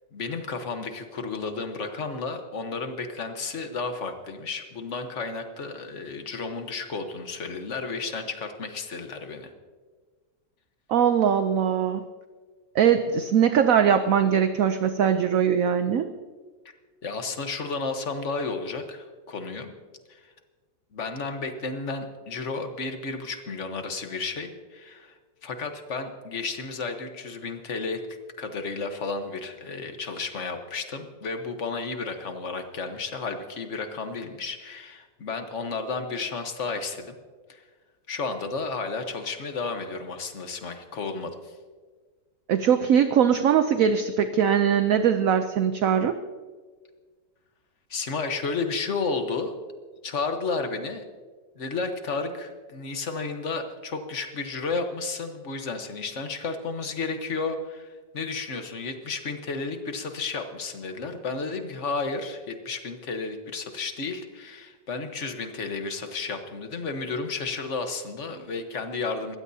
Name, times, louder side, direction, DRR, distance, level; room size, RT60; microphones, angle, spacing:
voice 1, 0.1-9.5 17.0-19.7 20.1-20.3 20.9-28.0 28.4-37.1 37.5-37.6 38.1-41.6 47.9-49.5 50.0-51.0 51.6-69.4, left 4 dB, 45° left, 6 dB, 1.4 m, -32 dB
voice 2, 10.9-12.0 12.7-16.1 42.5-46.2, right 8 dB, 65° right, 9 dB, 0.9 m, -21 dB
22.0 x 15.5 x 2.8 m, 1.5 s
omnidirectional pair, 1.9 m